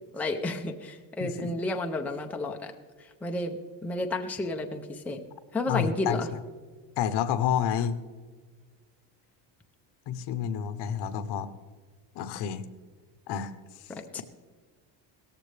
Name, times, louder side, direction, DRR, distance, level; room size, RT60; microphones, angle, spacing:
voice 1, 0.1-2.7 3.0-5.2 5.5-6.3 13.9-14.2, left 2 dB, 5° left, 3 dB, 0.5 m, -32 dB
voice 2, 1.2-1.5 5.7-6.2 7.0-8.0 10.1-11.5 12.1-12.6 13.3-13.5 13.8-13.9, left 9 dB, 65° left, 12 dB, 0.9 m, -29 dB
17.0 x 14.0 x 3.3 m, 1.5 s
cardioid pair, 165°, 45 cm